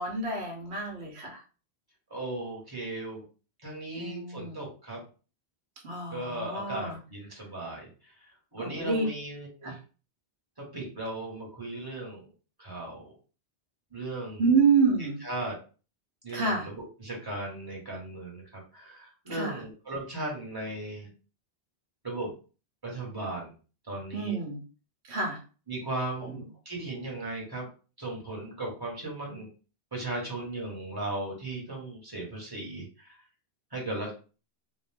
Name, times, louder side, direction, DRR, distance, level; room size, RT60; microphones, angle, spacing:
voice 1, 0.0-1.4 4.0-4.6 5.8-7.0 8.6-9.0 9.6-9.7 14.4-15.2 16.3-16.7 19.3-19.6 24.1-24.6 25.1-25.4 26.2-26.4, right 4 dB, 80° right, 1 dB, 1.1 m, -28 dB
voice 2, 2.1-3.2 3.6-5.0 6.1-8.1 8.5-9.8 10.6-12.3 12.6-13.1 13.9-14.4 15.2-15.6 16.2-21.1 22.0-22.3 22.8-23.5 23.9-24.4 25.7-27.7 28.0-29.5 29.9-33.2 33.7-34.1, right 2 dB, 20° right, -3 dB, 1.2 m, -37 dB
2.5 x 2.2 x 3.4 m, 0.35 s
omnidirectional pair, 1.1 m